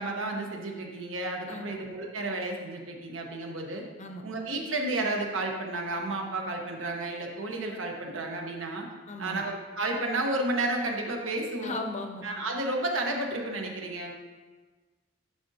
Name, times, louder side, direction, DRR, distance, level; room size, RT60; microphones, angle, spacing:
voice 1, 0.0-3.9 4.2-8.9 9.2-11.8 12.2-14.1, right 2 dB, 85° right, 1 dB, 1.1 m, -32 dB
voice 2, 9.1-9.4 11.6-12.2, left 2 dB, 35° left, 4 dB, 0.6 m, -36 dB
11.0 x 5.1 x 2.7 m, 1.3 s
head